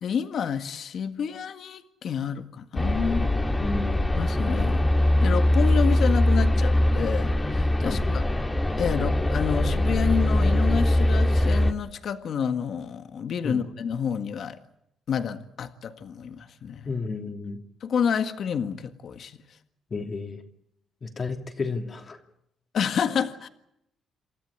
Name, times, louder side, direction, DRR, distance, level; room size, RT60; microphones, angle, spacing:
voice 1, 0.0-3.3 4.2-4.8 5.2-8.2 8.8-14.6 15.1-16.9 17.8-19.4 22.7-23.5, left 7 dB, 60° left, 8 dB, 1.7 m, -29 dB
sound 1, 2.7-11.7, left 1 dB, 15° left, 2.1 m, -22 dB
voice 2, 3.6-4.0 7.8-8.2 13.4-13.6 16.8-17.6 19.9-20.4 21.0-22.2, left 4 dB, 40° left, 3 dB, 3.0 m, -32 dB
28.5 x 13.5 x 9.8 m, 0.80 s
cardioid pair, 90°, 0 cm